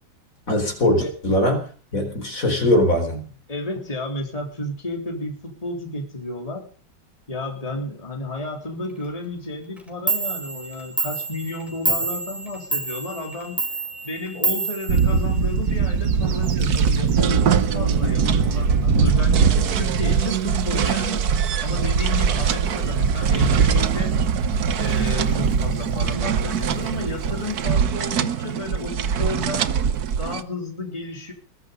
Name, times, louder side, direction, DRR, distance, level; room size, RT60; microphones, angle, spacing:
voice 1, 0.5-1.6 1.9-3.2, left 1 dB, 50° left, 4 dB, 4.5 m, -21 dB
voice 2, 3.5-6.7 7.3-13.7 14.0-21.3 21.6-24.3 24.8-29.7 30.2-31.3, left 2 dB, 20° left, 1 dB, 3.7 m, -32 dB
Clock, 9.8-9.9 10.1-15.7, right 4 dB, ahead, 4.0 m, -28 dB
Bird / Wind, 14.9-27.7, right 5 dB, 90° right, 2.1 m, -22 dB
sound 1, 15.7-30.4, right 8 dB, 60° right, 1.5 m, -26 dB
22.0 x 12.0 x 5.3 m, 0.40 s
omnidirectional pair, 1.9 m